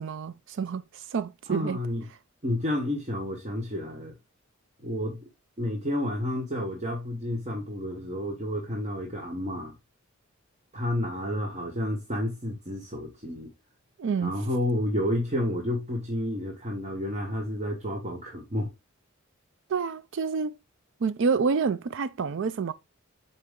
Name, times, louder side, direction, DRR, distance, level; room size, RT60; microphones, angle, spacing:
voice 1, 0.0-1.8 14.0-14.3 19.7-20.5 21.0-22.7, right 5 dB, 60° right, 0.4 m, -28 dB
voice 2, 1.5-2.0 2.4-4.1 4.8-5.3 5.6-9.7 10.7-13.5 14.2-18.7, left 1 dB, 35° right, 1.0 m, -30 dB
6.7 x 4.2 x 3.6 m
head